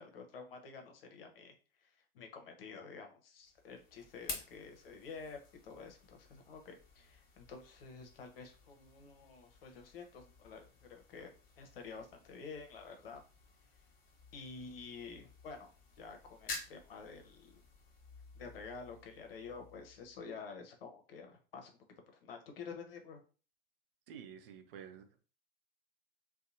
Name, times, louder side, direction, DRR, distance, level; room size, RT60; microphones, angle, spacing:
voice 1, 0.0-1.5 1.8-1.9 2.1-13.2 14.3-15.7 16.0-17.5 18.3-21.7 22.2-23.2, left 5 dB, 75° left, 4 dB, 0.7 m, -49 dB
sound 1, 3.4-20.4, left 3 dB, 30° left, 0.8 m, -52 dB
voice 2, 24.1-25.2, right 8 dB, 70° right, 6 dB, 0.6 m, -50 dB
2.8 x 2.2 x 2.5 m, 0.35 s
hypercardioid pair, 85°, 29 cm